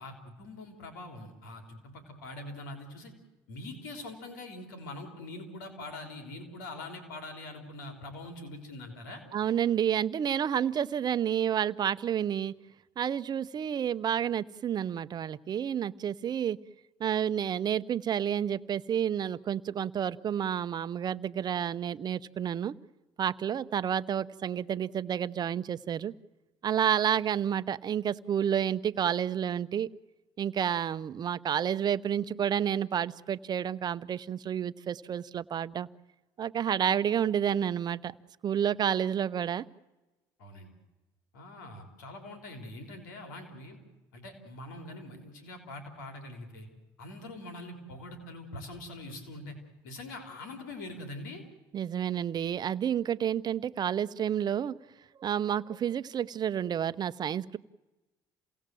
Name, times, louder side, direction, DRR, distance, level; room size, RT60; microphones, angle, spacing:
voice 1, 0.0-3.1 3.5-9.2 40.4-40.7 41.3-43.8 44.1-46.7 47.0-49.6 49.8-51.4, left 2 dB, 90° left, 5 dB, 3.7 m, -43 dB
voice 2, 9.3-12.5 13.0-16.6 17.0-22.8 23.2-26.1 26.6-29.9 30.4-35.9 36.4-38.1 38.4-39.6 51.7-54.8 55.2-57.6, right 9 dB, 45° right, 15 dB, 0.8 m, -30 dB
28.5 x 17.5 x 7.7 m, 1.1 s
hypercardioid pair, 70°, 10 cm